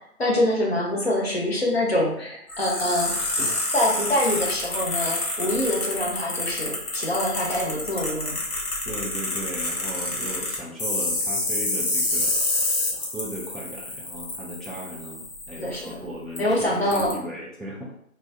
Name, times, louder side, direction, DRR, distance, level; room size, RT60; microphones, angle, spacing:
voice 1, 0.2-8.4 15.6-15.9 16.4-17.2, left 1 dB, 45° left, -2 dB, 0.7 m, -25 dB
sound 1, 2.5-15.9 16.4-16.5 16.9-17.1, left 2 dB, 90° left, 1.2 m, -28 dB
voice 2, 8.8-17.9, equal, ahead, -7 dB, 0.4 m, -37 dB
3.3 x 2.2 x 2.6 m, 0.72 s
figure-of-eight pair, 175°, 43 cm